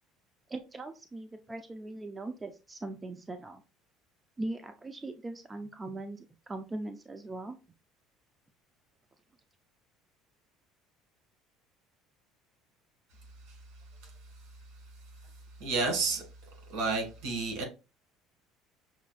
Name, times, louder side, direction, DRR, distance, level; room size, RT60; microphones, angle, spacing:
voice 1, 0.5-3.6 4.4-7.6, right 2 dB, 20° right, 0.4 m, -40 dB
voice 2, 15.6-16.2 16.7-17.6, right 3 dB, 70° right, 1.8 m, -30 dB
6.0 x 2.3 x 2.4 m
supercardioid pair, 110°, 0 cm